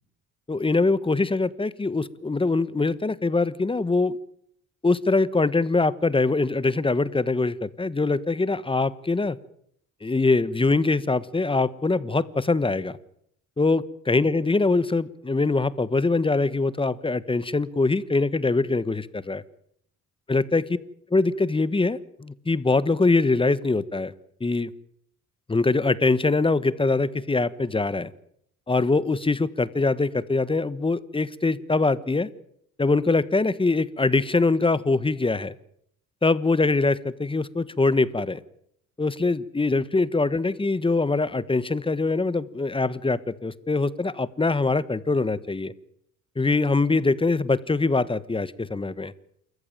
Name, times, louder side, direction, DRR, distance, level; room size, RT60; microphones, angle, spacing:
voice 1, 0.5-4.2 4.8-9.4 10.0-13.0 13.6-19.4 20.3-20.6 21.1-24.1 24.4-24.7 25.5-28.1 28.7-32.3 32.8-35.5 36.2-38.4 39.0-45.7 46.4-49.1, left 3 dB, 15° left, 16 dB, 1.3 m, -23 dB
28.0 x 14.5 x 9.0 m, 0.72 s
cardioid pair, 90°, 30 cm